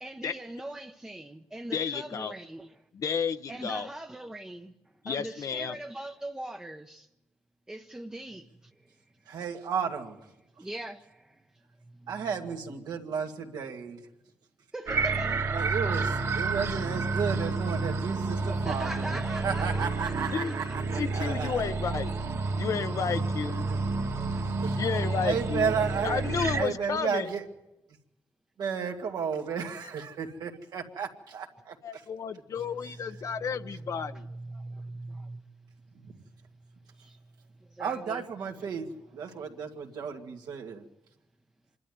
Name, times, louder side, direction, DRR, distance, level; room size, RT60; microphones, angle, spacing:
voice 1, 0.0-2.7 3.5-4.7 5.1-7.1 7.7-8.7 10.6-11.4 11.9-12.3 14.7-15.4 18.5-20.8 33.2-35.4 37.0-37.2 37.6-38.2, right 1 dB, 10° right, 0.8 m, -41 dB
voice 2, 1.7-2.3 2.9-3.9 5.0-5.8 20.3-20.5 20.9-22.1 22.6-23.7 24.8-25.7 26.0-27.3 31.8-34.3, left 6 dB, 55° left, 0.7 m, -32 dB
voice 3, 9.3-10.2 12.1-14.0 15.5-21.6 23.7-23.8 24.6-24.8 25.2-26.2 26.5-27.4 28.6-31.8 37.8-40.8, right 6 dB, 80° right, 2.2 m, -33 dB
sound 1, 14.9-26.6, right 3 dB, 50° right, 1.7 m, -30 dB
25.5 x 12.0 x 9.4 m
wide cardioid pair, 140°, 7 cm